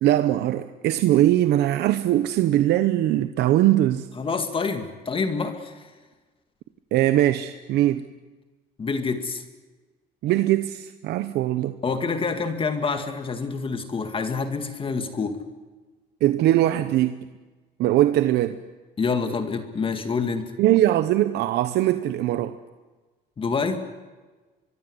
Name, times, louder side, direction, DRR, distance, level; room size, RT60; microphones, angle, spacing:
voice 1, 0.0-4.1 6.9-8.0 10.2-11.8 16.2-17.2 17.8-18.6 20.6-22.5, right 13 dB, 80° right, 10 dB, 1.0 m, -21 dB
voice 2, 4.2-5.9 8.8-9.4 11.8-15.4 19.0-20.5 23.4-23.9, left 4 dB, 30° left, 7 dB, 2.1 m, -27 dB
23.5 x 23.5 x 8.0 m, 1.3 s
cardioid pair, 110°, 17 cm